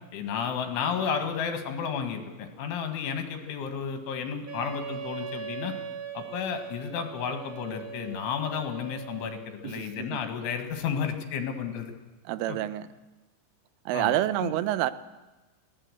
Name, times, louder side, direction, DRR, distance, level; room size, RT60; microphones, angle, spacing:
voice 1, 0.1-5.7 6.2-11.9 12.5-12.6 13.9-14.2 14.4-14.5, left 7 dB, 80° left, 6 dB, 4.1 m, -32 dB
Wind instrument woodwind instrument, 4.5-9.5, right 8 dB, 35° right, 2.1 m, -40 dB
voice 2, 9.6-10.2 12.3-12.9 13.9-14.9, right 14 dB, 90° right, 14 dB, 3.3 m, -28 dB
20.5 x 16.5 x 8.0 m, 1.1 s
omnidirectional pair, 5.5 m